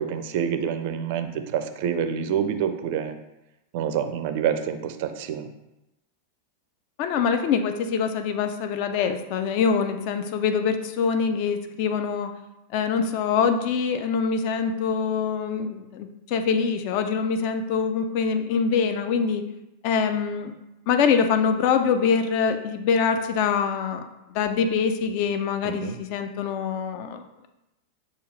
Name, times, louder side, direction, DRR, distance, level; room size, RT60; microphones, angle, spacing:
voice 1, 0.0-3.2 3.7-5.5 25.6-25.9, right 8 dB, 50° right, 8 dB, 0.4 m, -27 dB
voice 2, 7.0-12.3 12.7-19.4 19.8-20.5 20.9-24.0 24.3-27.5, left 6 dB, 45° left, 7 dB, 0.4 m, -24 dB
6.3 x 2.4 x 3.2 m, 0.93 s
figure-of-eight pair, 90°, 0 cm